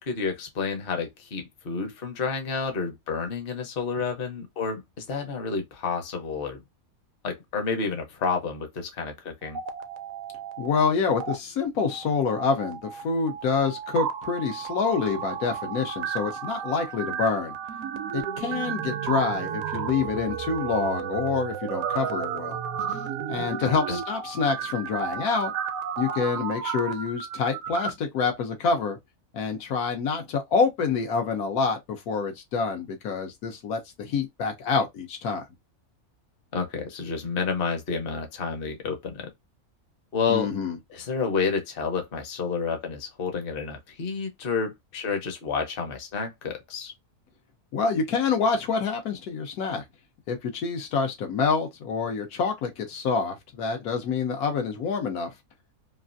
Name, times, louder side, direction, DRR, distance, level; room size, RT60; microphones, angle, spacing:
voice 1, 0.0-6.6 7.2-9.6 23.6-24.0 36.5-39.3 40.1-40.5 40.9-46.9, left 5 dB, 45° left, 0.9 m, -30 dB
sound 1, 9.4-10.8 11.1-11.3 11.9-27.9, right 8 dB, 70° right, 0.9 m, -33 dB
voice 2, 10.6-17.5 18.1-22.6 22.9-23.0 23.3-25.5 26.0-29.0 29.3-35.4 40.3-40.8 47.7-49.8 50.3-55.3, left 5 dB, 80° left, 1.3 m, -27 dB
3.0 x 2.4 x 2.5 m
omnidirectional pair, 1.6 m